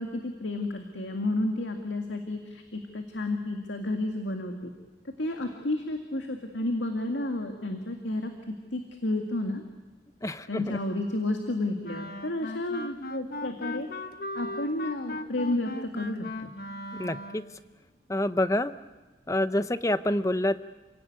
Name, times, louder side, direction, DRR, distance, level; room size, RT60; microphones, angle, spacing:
voice 1, 0.0-4.7 5.2-9.6 10.5-13.9 14.3-16.5, left 2 dB, 90° left, 4 dB, 2.1 m, -31 dB
voice 2, 10.2-10.8 17.0-17.4 18.1-18.7 19.3-20.6, left 1 dB, 15° left, 12 dB, 0.8 m, -27 dB
Wind instrument woodwind instrument, 11.8-17.6, left 1 dB, 55° left, 1.4 m, -38 dB
28.5 x 17.0 x 9.5 m, 1.2 s
head